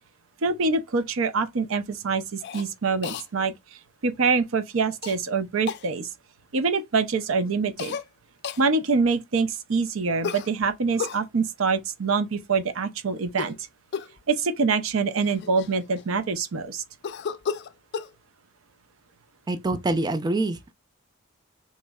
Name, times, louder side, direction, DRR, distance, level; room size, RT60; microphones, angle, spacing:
voice 1, 0.4-3.5 4.0-6.1 6.5-8.0 8.6-13.5 14.3-16.8, right 4 dB, 80° right, 0.5 m, -25 dB
Cough, 2.4-2.7 3.0-3.3 5.0-5.2 5.7-5.9 7.8-8.1 8.4-8.6 10.2-11.2 13.3-13.6 13.9-14.2 14.9-15.0 15.2-16.2 17.0-18.1, left 6 dB, 60° left, 0.4 m, -33 dB
voice 2, 19.5-20.7, right 2 dB, 20° right, 0.3 m, -25 dB
3.6 x 3.0 x 2.2 m
head